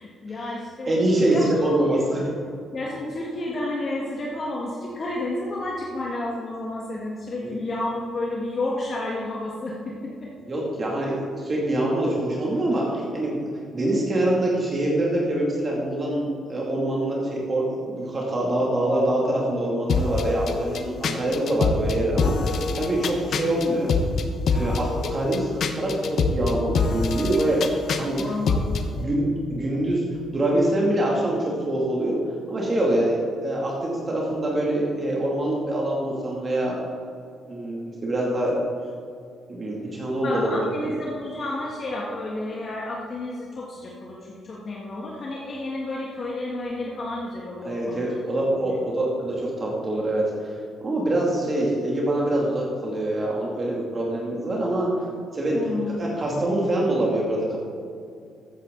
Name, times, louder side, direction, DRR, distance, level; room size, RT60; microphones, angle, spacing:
voice 1, 0.0-2.0 2.7-10.3 28.2-29.1 40.2-48.2 48.6-48.8 55.5-56.0, left 2 dB, 45° left, -3 dB, 1.7 m, -31 dB
voice 2, 0.9-2.3 7.4-7.5 10.5-13.3 13.7-23.9 24.5-28.2 28.9-30.0 30.3-32.2 32.5-36.8 37.5-38.6 39.5-40.5 40.8-40.9 47.6-55.0 55.3-55.7 56.0-57.6, right 1 dB, 35° right, -3 dB, 2.4 m, -25 dB
sound 1, 19.9-28.9, left 4 dB, 60° left, 0.9 m, -26 dB
14.0 x 8.6 x 3.9 m, 2.3 s
cardioid pair, 90°, 0 cm